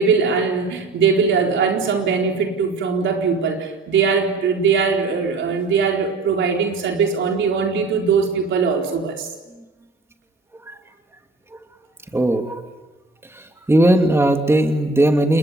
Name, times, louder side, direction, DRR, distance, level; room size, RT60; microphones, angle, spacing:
voice 1, 0.0-9.3, right 5 dB, 70° right, 2 dB, 4.4 m, -20 dB
voice 2, 12.1-12.6 13.3-15.4, right 1 dB, 15° right, 5 dB, 2.7 m, -17 dB
29.5 x 20.5 x 9.5 m, 1.2 s
cardioid pair, 90°, 20 cm